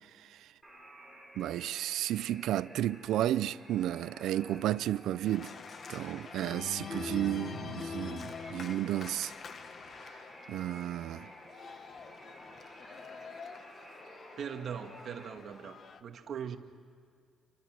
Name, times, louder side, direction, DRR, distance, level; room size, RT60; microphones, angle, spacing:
voice 1, 0.1-0.5 1.3-5.5 5.9-9.3 10.1-10.2 10.5-11.3, right 13 dB, 85° right, 0.6 m, -33 dB
sound 1, 0.6-15.3, right 1 dB, ahead, 5.2 m, -53 dB
Organ, 5.2-16.0, left 5 dB, 45° left, 1.3 m, -45 dB
voice 2, 14.4-16.6, right 7 dB, 55° right, 1.7 m, -40 dB
30.0 x 24.5 x 6.2 m
cardioid pair, 125°, 0 cm